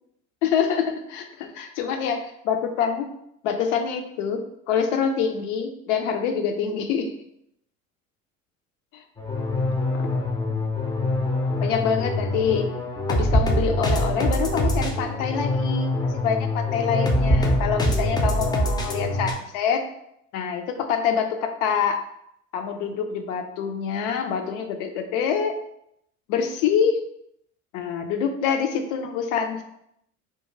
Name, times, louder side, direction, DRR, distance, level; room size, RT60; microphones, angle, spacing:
voice 1, 0.4-2.2 2.4-3.1 3.4-7.1 8.9-9.0 11.6-12.7 13.1-19.8 20.3-22.0 22.5-25.5 26.3-27.0 27.7-29.6, left 7 dB, 65° left, 6 dB, 0.5 m, -25 dB
sound 1, 9.2-19.3, left 1 dB, 10° left, 0.4 m, -24 dB
2.3 x 2.2 x 3.1 m, 0.77 s
hypercardioid pair, 75°, 39 cm